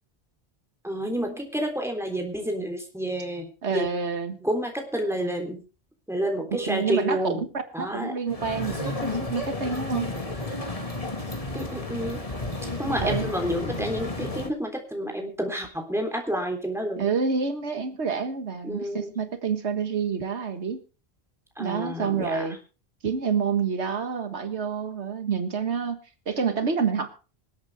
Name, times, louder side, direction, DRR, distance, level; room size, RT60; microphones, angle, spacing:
voice 1, 0.8-3.9 4.4-5.6 6.1-7.4 7.7-8.2 11.5-12.2 12.8-17.1 18.6-19.1 21.6-22.5 26.6-26.7, equal, ahead, 2 dB, 3.5 m, -29 dB
voice 2, 3.6-4.4 6.5-7.2 7.8-10.1 13.0-13.3 17.0-20.8 21.6-22.6 23.0-26.0 26.3-27.1, right 6 dB, 90° right, 8 dB, 1.8 m, -28 dB
sound 1, 8.3-14.5, left 2 dB, 35° left, 2.1 m, -32 dB
25.5 x 8.5 x 3.5 m, 0.34 s
omnidirectional pair, 1.1 m